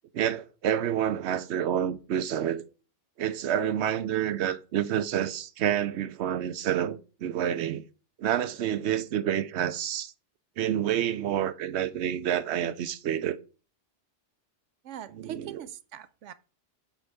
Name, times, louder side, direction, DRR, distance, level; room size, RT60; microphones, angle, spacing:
voice 1, 0.1-2.6 3.2-7.8 8.2-10.1 10.6-13.4 15.1-15.6, right 10 dB, 70° right, 0.9 m, -28 dB
voice 2, 14.8-16.3, right 10 dB, 90° right, 1.0 m, -42 dB
8.0 x 3.9 x 4.7 m
omnidirectional pair, 1.2 m